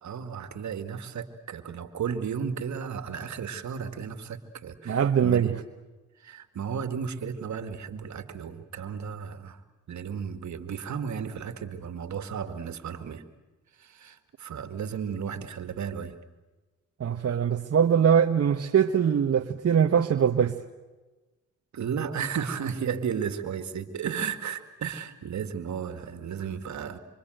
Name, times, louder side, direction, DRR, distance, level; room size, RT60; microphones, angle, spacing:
voice 1, 0.0-5.6 6.2-9.6 9.9-13.2 13.8-16.2 21.7-27.0, right 7 dB, 70° right, 9 dB, 2.2 m, -34 dB
voice 2, 4.9-5.5 17.0-20.6, right 8 dB, 55° right, 5 dB, 1.2 m, -22 dB
26.5 x 26.0 x 8.0 m, 1.2 s
supercardioid pair, 55°, 30 cm